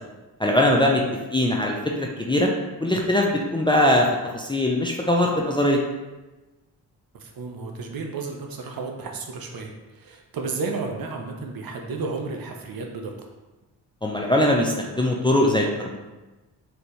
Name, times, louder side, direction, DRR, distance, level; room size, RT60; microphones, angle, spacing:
voice 1, 0.4-1.0 1.3-2.5 2.8-4.1 4.3-5.8 14.0-16.0, left 1 dB, 10° left, -1 dB, 0.5 m, -21 dB
voice 2, 7.1-13.1, right 4 dB, 50° right, 2 dB, 0.7 m, -32 dB
4.3 x 2.6 x 3.1 m, 1.1 s
hypercardioid pair, 40°, 46 cm